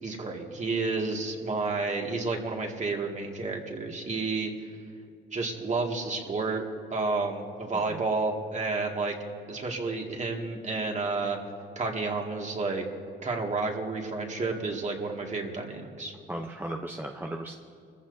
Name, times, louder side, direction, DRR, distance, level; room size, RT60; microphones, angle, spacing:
voice 1, 0.0-4.5 5.3-6.6 6.9-9.2 9.5-11.4 11.8-12.8 13.2-16.1, right 3 dB, 35° right, 1 dB, 2.1 m, -30 dB
voice 2, 16.3-17.6, right 1 dB, 10° right, 2 dB, 0.8 m, -36 dB
29.0 x 15.0 x 2.7 m, 2.4 s
cardioid pair, 90°, 20 cm